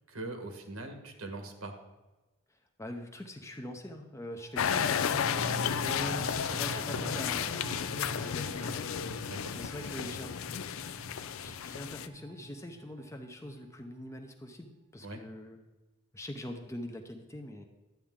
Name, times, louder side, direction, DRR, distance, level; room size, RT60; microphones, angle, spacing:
voice 1, 0.1-1.7 4.9-5.0 9.3-9.5 15.0-15.2, right 2 dB, 75° right, 5 dB, 1.4 m, -41 dB
voice 2, 2.8-9.3 9.5-10.3 11.4-15.6 16.1-17.7, left 1 dB, 15° left, 4 dB, 0.6 m, -43 dB
sound 1, 4.4-13.8 14.1-14.2, right 3 dB, 40° right, 0.5 m, -45 dB
sound 2, 4.6-12.1, left 8 dB, 65° left, 0.4 m, -33 dB
11.5 x 8.3 x 3.7 m, 1.1 s
head